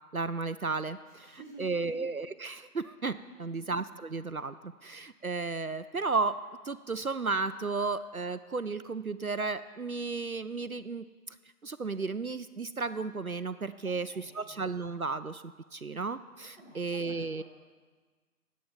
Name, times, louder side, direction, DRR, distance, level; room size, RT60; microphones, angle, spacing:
voice 1, 0.1-6.4 6.6-11.4 11.6-15.4 15.7-17.4, right 4 dB, 65° right, 12 dB, 0.6 m, -34 dB
voice 2, 1.1-2.0 3.2-3.6 13.8-14.5 16.5-17.4, right 1 dB, 30° left, -7 dB, 3.7 m, -52 dB
11.0 x 8.5 x 7.3 m, 1.4 s
figure-of-eight pair, 180°, 46 cm